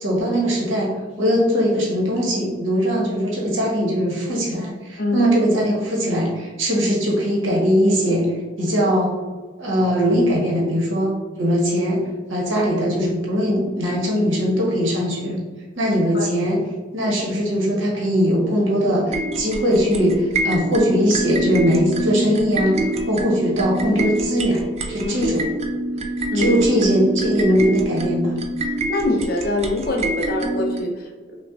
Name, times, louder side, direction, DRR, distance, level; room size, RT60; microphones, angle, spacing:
voice 1, 0.0-0.9 1.2-8.3 8.6-9.2 9.6-12.0 12.3-15.4 15.8-16.6 16.9-24.6 24.9-25.4 26.3-28.3, equal, 85° right, -3 dB, 1.2 m, -20 dB
voice 2, 5.0-5.3 16.1-16.3 25.0-25.3 26.3-26.6 28.9-31.4, left 2 dB, 50° left, 2 dB, 0.6 m, -24 dB
sound 1, 19.1-30.8, right 1 dB, 35° right, 0.4 m, -26 dB
5.5 x 2.3 x 2.4 m, 1.4 s
head